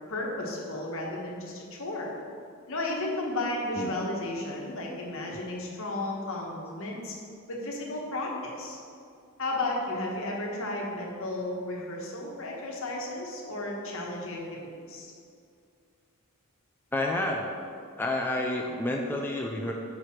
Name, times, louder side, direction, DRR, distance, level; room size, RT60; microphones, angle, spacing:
voice 1, 0.1-2.1 2.7-7.1 7.5-8.8 9.4-14.6 14.9-15.1, left 2 dB, 65° left, -2 dB, 1.2 m, -33 dB
voice 2, 16.9-17.5 18.0-19.7, left 1 dB, 10° left, 0 dB, 0.4 m, -29 dB
4.8 x 4.7 x 5.7 m, 2.4 s
head